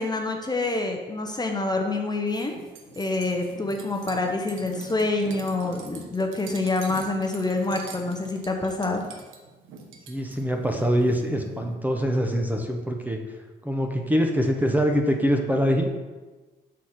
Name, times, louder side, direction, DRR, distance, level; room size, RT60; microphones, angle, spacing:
voice 1, 0.0-2.6 3.0-9.0, left 2 dB, 20° left, 3 dB, 0.8 m, -27 dB
sound 1, 2.3-11.7, right 4 dB, 90° right, 0.9 m, -43 dB
voice 2, 10.1-13.2 13.6-15.9, equal, 10° right, 2 dB, 0.8 m, -24 dB
6.4 x 4.1 x 5.8 m, 1.2 s
cardioid pair, 90°, 20 cm